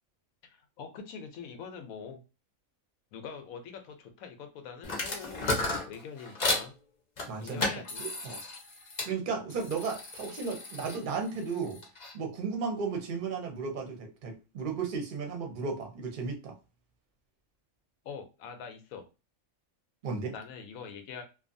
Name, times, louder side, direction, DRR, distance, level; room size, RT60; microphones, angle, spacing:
voice 1, 0.5-2.2 3.1-5.5 5.9-6.7 7.4-8.0 18.0-19.0 20.3-21.2, left 6 dB, 85° left, 6 dB, 1.0 m, -44 dB
sound 1, 4.8-6.7 7.2-9.1 9.5-12.1, left 2 dB, 40° left, 0.7 m, -34 dB
voice 2, 7.3-7.7 8.0-8.4 9.0-11.8 12.1-16.5 20.0-20.3, right 5 dB, 50° right, 3 dB, 0.7 m, -34 dB
2.7 x 2.3 x 2.5 m, 0.31 s
omnidirectional pair, 1.4 m